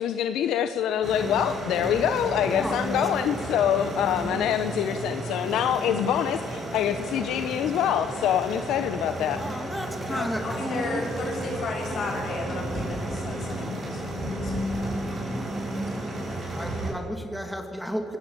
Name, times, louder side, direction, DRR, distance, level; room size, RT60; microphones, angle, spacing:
voice 1, 0.0-9.4, left 9 dB, 85° left, 9 dB, 0.9 m, -25 dB
sound 1, 1.0-16.9, right 1 dB, 35° right, 7.9 m, -33 dB
voice 2, 2.5-3.0 9.4-11.0 15.8-18.2, equal, ahead, 4 dB, 2.5 m, -34 dB
voice 3, 10.1-15.0 16.3-16.4, left 2 dB, 60° left, 0 dB, 7.2 m, -34 dB
26.5 x 16.5 x 7.6 m, 2.7 s
cardioid pair, 90°, 0 cm